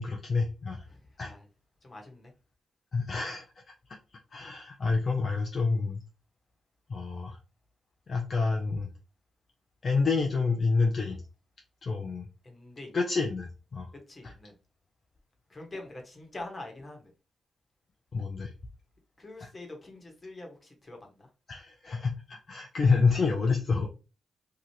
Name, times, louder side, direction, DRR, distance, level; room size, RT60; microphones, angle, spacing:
voice 1, 0.0-0.8 1.2-1.3 2.9-3.4 4.3-6.0 6.9-7.4 8.1-8.9 9.8-11.2 11.8-12.3 12.9-13.9 14.2-14.3 18.1-18.5 19.4-19.5 21.5-23.9, left 4 dB, 50° left, 1 dB, 0.5 m, -28 dB
voice 2, 0.9-1.5 1.8-2.3 12.4-12.9 14.1-14.5 15.5-17.1 19.2-21.3, left 2 dB, 35° left, 2 dB, 1.2 m, -45 dB
2.8 x 2.3 x 3.2 m, 0.32 s
hypercardioid pair, 45°, 0 cm